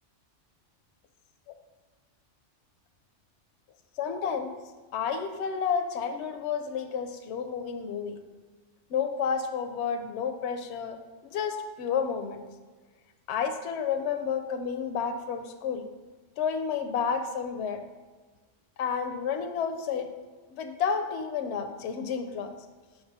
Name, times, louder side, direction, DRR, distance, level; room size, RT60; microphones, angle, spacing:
voice 1, 4.0-4.5 4.9-8.2 8.9-11.0 11.2-12.4 13.3-15.9 16.4-17.8 18.8-20.1 20.5-22.5, left 6 dB, 70° left, 7 dB, 0.8 m, -30 dB
6.1 x 6.0 x 4.2 m, 1.4 s
omnidirectional pair, 1.3 m